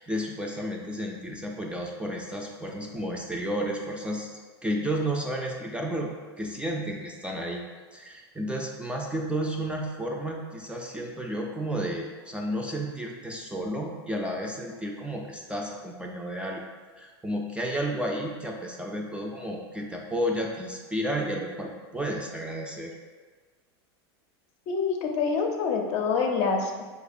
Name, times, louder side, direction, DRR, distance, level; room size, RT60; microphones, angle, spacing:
voice 1, 0.0-7.6 7.9-16.6 17.0-22.9, right 1 dB, 10° right, 0 dB, 0.3 m, -32 dB
voice 2, 24.7-26.8, left 5 dB, 50° left, 2 dB, 0.5 m, -26 dB
4.7 x 2.0 x 2.5 m, 1.4 s
hypercardioid pair, 100°, 14 cm